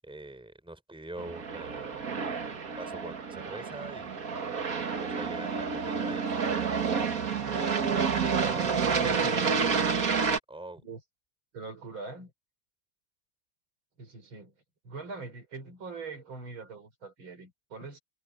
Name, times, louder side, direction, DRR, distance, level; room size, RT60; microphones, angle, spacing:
voice 1, 0.0-2.1 2.5-4.3 4.7-6.8 8.3-10.8, right 2 dB, ahead, 3.9 m, -44 dB
Aircraft, 1.2-10.4, right 5 dB, 45° right, 2.0 m, -29 dB
voice 2, 8.9-9.4 10.8-11.0 11.5-12.3 14.0-14.5 14.8-18.0, right 3 dB, 75° right, 5.4 m, -42 dB
omnidirectional pair, 2.2 m